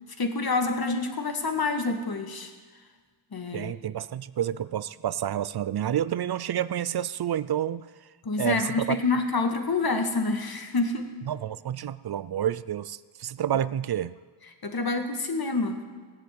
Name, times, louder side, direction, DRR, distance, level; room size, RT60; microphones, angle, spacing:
voice 1, 0.2-2.5 3.3-3.7 8.2-11.1 14.6-15.8, left 3 dB, 50° left, 5 dB, 1.9 m, -27 dB
voice 2, 3.5-7.8 8.4-9.0 11.3-14.1, right 10 dB, 55° right, 17 dB, 0.5 m, -29 dB
16.5 x 6.9 x 9.3 m, 1.5 s
cardioid pair, 70°, 48 cm